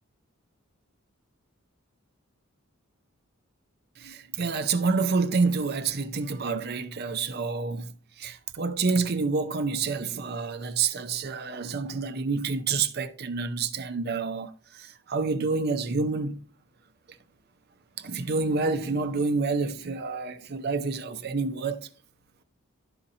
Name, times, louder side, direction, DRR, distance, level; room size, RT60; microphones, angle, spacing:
voice 1, 4.0-16.4 18.0-21.9, right 4 dB, 50° right, 0.6 m, -28 dB
12.0 x 4.2 x 2.6 m
head